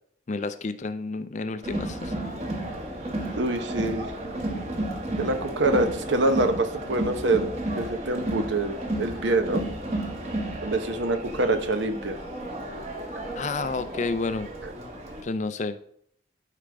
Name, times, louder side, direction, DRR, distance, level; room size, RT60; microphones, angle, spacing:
voice 1, 0.3-2.1 13.4-14.5 15.2-15.8, left 3 dB, 40° left, 12 dB, 0.4 m, -30 dB
Crowd, 1.6-15.2, right 1 dB, 35° right, 1.3 m, -33 dB
voice 2, 3.3-4.1 5.2-7.5 7.8-9.6 10.6-12.2 14.6-14.7, right 2 dB, 70° right, 8 dB, 0.9 m, -25 dB
11.5 x 5.1 x 3.4 m, 0.67 s
head